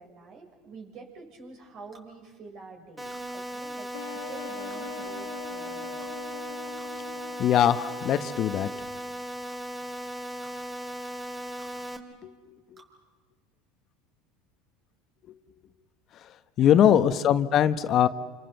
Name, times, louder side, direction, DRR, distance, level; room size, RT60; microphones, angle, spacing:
voice 1, 0.0-6.2 16.6-16.7, right 4 dB, 55° right, 2 dB, 6.8 m, -47 dB
sound 1, 1.9-2.1 3.1-3.3 4.7-4.9 6.0-6.2 6.8-6.9 7.9-8.0 8.6-8.7 9.5-9.6 10.4-10.6 11.6-11.7 12.8-12.9, right 4 dB, 35° right, 6.1 m, -54 dB
sound 2, 3.0-12.0, equal, 15° right, 3.5 m, -37 dB
sound 3, 3.9-8.8, left 7 dB, 90° left, 1.6 m, -43 dB
voice 2, 7.4-8.7 12.2-12.8 16.2-18.1, left 10 dB, 45° left, 11 dB, 1.1 m, -22 dB
29.0 x 27.0 x 7.0 m, 1.4 s
hypercardioid pair, 85°, 0 cm